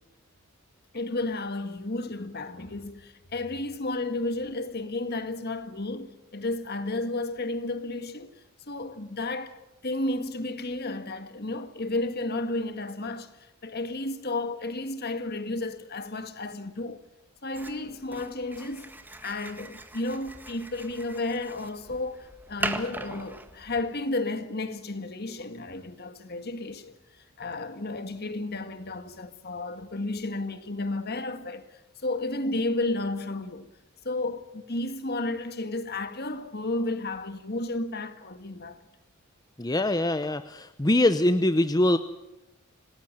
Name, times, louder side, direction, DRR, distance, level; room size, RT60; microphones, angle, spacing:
voice 1, 0.9-9.6 9.8-13.3 13.6-17.0 17.4-18.9 19.2-27.0 27.4-33.7 34.1-38.8, left 2 dB, 45° left, 1.8 m, -32 dB
sound 1, 17.5-23.9, right 2 dB, 10° right, 1.7 m, -39 dB
voice 2, 39.6-42.0, left 1 dB, 15° left, 0.7 m, -23 dB
27.0 x 19.0 x 7.7 m
head